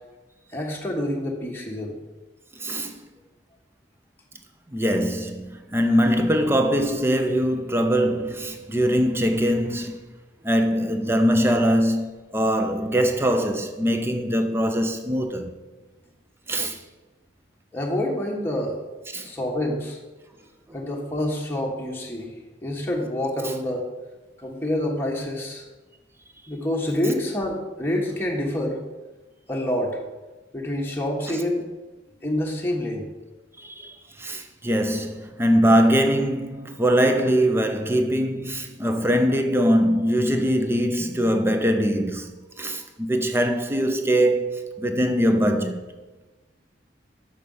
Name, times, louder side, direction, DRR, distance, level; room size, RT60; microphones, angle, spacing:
voice 1, 0.5-1.9 17.7-18.8 19.2-20.0 20.7-22.3 22.6-23.9 24.4-25.7 26.5-28.8 29.5-30.0 30.5-31.6 32.2-33.1, left 1 dB, 10° left, 1.3 m, -27 dB
voice 2, 2.5-3.0 4.7-10.0 10.4-15.5 16.5-16.8 19.1-19.3 31.3-31.4 33.6-42.3 42.6-45.8, equal, 15° right, 0.6 m, -22 dB
6.4 x 6.3 x 5.4 m
head